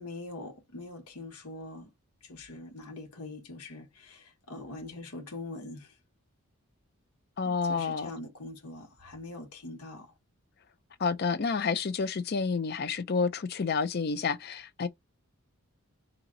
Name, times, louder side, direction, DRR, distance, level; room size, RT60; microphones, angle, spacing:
voice 1, 0.0-1.9 2.2-6.0 7.4-10.1, left 2 dB, 85° left, 1.1 m, -43 dB
voice 2, 7.4-8.1 11.0-14.9, left 5 dB, 45° left, 0.4 m, -29 dB
3.9 x 2.9 x 3.7 m
head